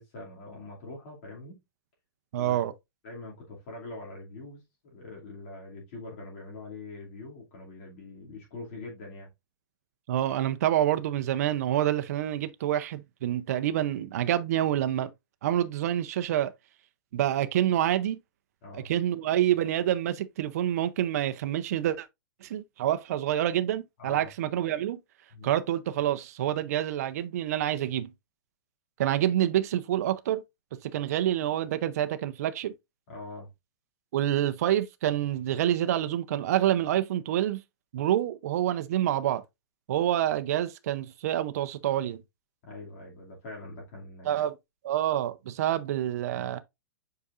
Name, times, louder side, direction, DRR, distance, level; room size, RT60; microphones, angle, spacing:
voice 1, 0.0-1.6 2.4-2.6 3.0-4.6 4.9-9.3 18.6-18.9 24.0-24.3 25.3-25.5 33.1-33.5 42.6-44.4, left 2 dB, 35° left, 2.5 m, -43 dB
voice 2, 2.3-2.7 10.1-15.1 15.4-16.5 17.1-18.2 18.7-22.1 22.4-25.0 25.4-28.1 29.0-30.4 30.8-32.7 34.1-37.6 37.9-39.4 39.9-42.2 44.3-44.5 44.8-46.6, right 12 dB, 45° right, 0.6 m, -27 dB
8.1 x 4.8 x 2.5 m
hypercardioid pair, 175°, 12 cm